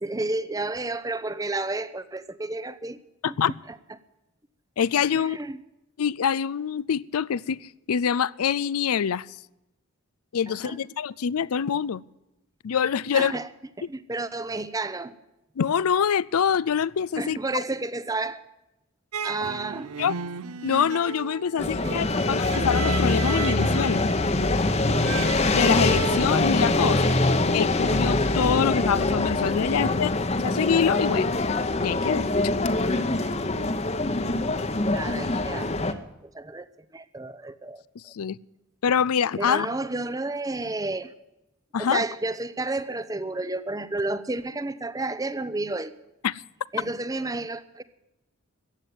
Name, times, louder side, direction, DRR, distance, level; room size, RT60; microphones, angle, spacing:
voice 1, 0.0-3.0 3.7-3.8 5.1-5.6 10.5-10.8 13.1-13.5 13.8-15.2 17.2-18.4 19.2-19.9 21.5-22.4 27.0-27.2 29.7-30.0 34.9-38.1 39.4-41.1 41.8-45.9 46.7-47.8, right 2 dB, 15° right, 14 dB, 0.7 m, -31 dB
voice 2, 4.8-5.4 6.0-9.3 10.3-12.0 12.6-13.3 15.6-17.4 20.0-20.1 20.6-24.0 25.5-27.0 27.5-30.1 30.4-31.3 31.8-32.3 38.1-38.4 38.8-39.7 41.7-42.0 46.2-46.4, left 7 dB, 85° left, 20 dB, 0.4 m, -25 dB
sound 1, 19.1-26.3, right 6 dB, 85° right, 0.6 m, -34 dB
sound 2, 21.6-35.9, left 2 dB, 30° left, 0.9 m, -24 dB
15.0 x 9.1 x 9.4 m, 0.92 s
head